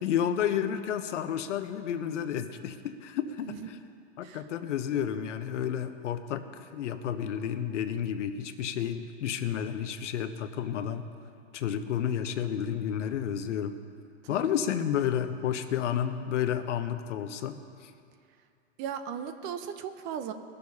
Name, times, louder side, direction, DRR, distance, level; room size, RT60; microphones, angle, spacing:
voice 1, 0.0-3.8 4.2-11.1 11.5-13.8 14.3-17.9, left 9 dB, 80° left, 9 dB, 1.0 m, -31 dB
voice 2, 18.8-20.3, right 8 dB, 35° right, 9 dB, 0.7 m, -36 dB
20.0 x 7.0 x 5.5 m, 2.5 s
supercardioid pair, 140°, 36 cm